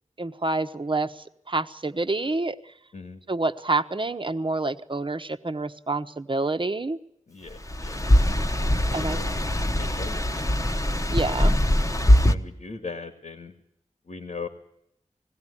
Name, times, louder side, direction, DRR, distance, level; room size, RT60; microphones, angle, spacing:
voice 1, 0.2-2.6 3.3-7.0 8.9-9.2 11.1-11.6, right 2 dB, 40° right, 9 dB, 1.2 m, -27 dB
voice 2, 7.3-8.1 8.6-10.4 11.3-11.4 12.1-13.5 14.1-14.5, left 4 dB, 80° left, 6 dB, 2.1 m, -40 dB
sound 1, 7.6-12.3, left 1 dB, 25° left, 1.2 m, -22 dB
21.0 x 16.5 x 10.0 m, 0.78 s
wide cardioid pair, 60°, 13 cm